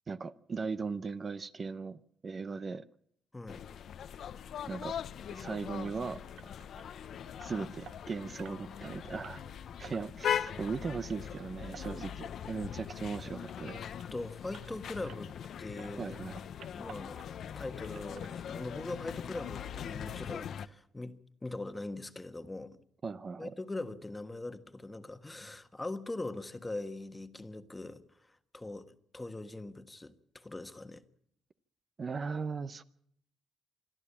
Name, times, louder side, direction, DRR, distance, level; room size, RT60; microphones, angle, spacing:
voice 1, 0.1-2.8 4.7-4.9 5.3-6.5 7.4-9.4 9.8-13.8 16.0-16.4 23.0-23.5 32.0-32.8, right 5 dB, 40° right, 0.8 m, -38 dB
voice 2, 3.3-3.6 10.6-10.7 12.7-12.8 14.1-16.2 16.7-17.2 17.5-22.8 23.4-31.0, left 2 dB, 15° left, 1.4 m, -42 dB
sound 1, 3.5-20.7, left 9 dB, 65° left, 0.8 m, -41 dB
sound 2, 6.4-15.5 15.8-17.6 17.8-18.9 19.2-19.3 19.8-19.9 20.2-20.3, right 8 dB, 70° right, 1.1 m, -55 dB
26.0 x 12.5 x 8.5 m
cardioid pair, 90°, 0 cm